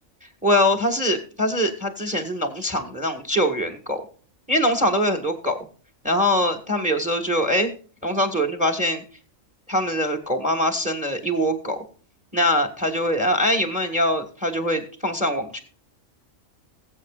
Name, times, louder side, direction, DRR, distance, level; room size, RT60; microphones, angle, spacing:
voice 1, 0.2-4.0 4.5-5.6 6.0-7.7 8.0-9.0 9.7-11.8 12.3-15.6, equal, 5° right, 7 dB, 1.6 m, -23 dB
20.5 x 7.9 x 2.4 m, 0.41 s
omnidirectional pair, 1.3 m